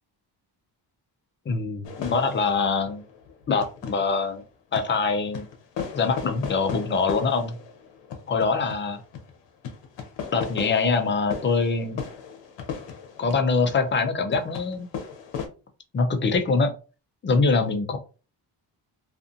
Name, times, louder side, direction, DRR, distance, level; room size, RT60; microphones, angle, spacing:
voice 1, 1.5-3.0 3.5-4.4 4.7-5.4 5.9-7.5 8.3-9.0 10.3-12.0 13.2-14.9 15.9-16.7 17.2-18.0, left 4 dB, 30° left, 7 dB, 0.5 m, -24 dB
sound 1, 1.8-4.3 4.7-15.5, left 6 dB, 80° left, 0.7 m, -37 dB
2.5 x 2.5 x 2.5 m, 0.34 s
cardioid pair, 110°, 42 cm